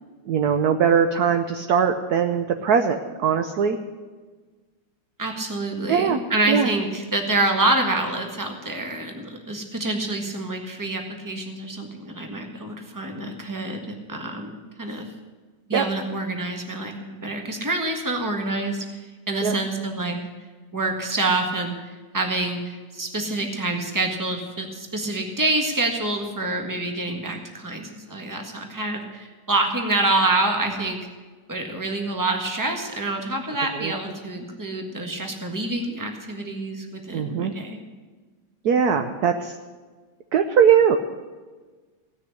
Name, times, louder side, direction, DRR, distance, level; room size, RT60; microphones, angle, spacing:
voice 1, 0.2-3.8 5.9-6.2 6.5-6.7 15.7-15.8 19.4-19.5 33.7-33.9 37.1-37.5 38.6-39.6 40.3-41.0, right 7 dB, 65° right, 6 dB, 1.0 m, -20 dB
voice 2, 5.2-15.1 15.7-18.8 19.3-20.2 20.7-31.0 31.5-37.8, right 2 dB, 10° right, 3 dB, 1.4 m, -27 dB
17.0 x 6.5 x 9.8 m, 1.4 s
omnidirectional pair, 2.3 m